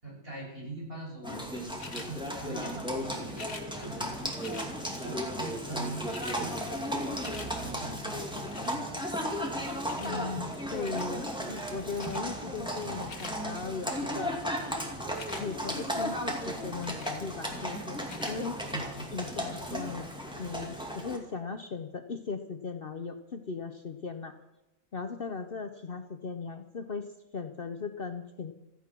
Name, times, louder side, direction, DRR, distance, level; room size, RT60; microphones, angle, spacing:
voice 1, 0.0-3.5 3.8-4.2 5.0-7.1 7.6-9.0 18.7-19.2 19.7-19.8, right 2 dB, 45° right, -3 dB, 7.0 m, -42 dB
Livestock farm animals working animals, 1.2-21.2, equal, 5° right, 2.4 m, -35 dB
sound 1, 1.8-2.1 3.3-3.7 4.4-4.7 5.6-5.7 5.9-6.4 6.8-7.5 8.5-8.8 9.9-10.2 10.8-11.1 12.0-12.2 12.8-13.4 15.1-15.4 16.8-17.2 18.0-18.4 19.0-19.1, left 4 dB, 85° left, 2.1 m, -44 dB
voice 2, 10.0-14.4 15.3-18.0 18.3-18.6 19.1-20.1 20.4-24.3 24.9-27.0 27.3-28.5, left 4 dB, 45° left, 7 dB, 1.0 m, -38 dB
15.5 x 14.5 x 6.0 m, 0.92 s
omnidirectional pair, 1.4 m